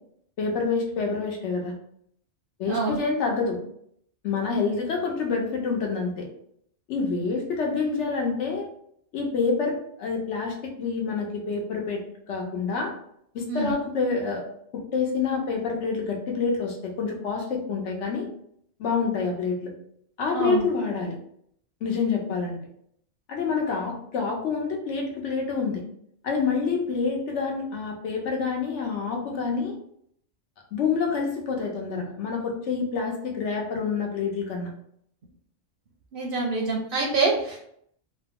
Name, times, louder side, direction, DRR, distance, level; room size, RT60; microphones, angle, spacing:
voice 1, 0.4-1.7 2.6-3.6 4.2-6.3 6.9-8.7 9.1-12.0 12.3-12.9 13.3-14.4 14.7-18.3 18.8-19.7 20.2-21.2 21.8-22.6 23.3-25.8 26.2-29.8 30.7-34.7, left 5 dB, 75° left, 1 dB, 1.0 m, -27 dB
voice 2, 2.7-3.0 13.5-13.7 20.3-20.7 36.1-37.6, right 3 dB, 60° right, -1 dB, 0.7 m, -25 dB
2.8 x 2.0 x 3.4 m, 0.69 s
omnidirectional pair, 1.3 m